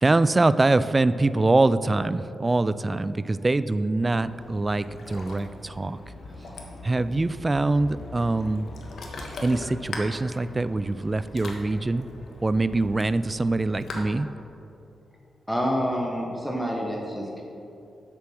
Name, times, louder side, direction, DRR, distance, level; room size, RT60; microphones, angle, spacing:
voice 1, 0.0-6.0 6.8-8.7 9.4-12.1 12.4-14.3, right 2 dB, 25° right, 15 dB, 0.3 m, -24 dB
Ocean, 4.0-14.0, left 2 dB, 70° left, 1.2 m, -41 dB
voice 2, 15.5-17.4, equal, 5° left, -1 dB, 1.2 m, -27 dB
7.8 x 6.9 x 6.1 m, 2.8 s
cardioid pair, 85°, 0 cm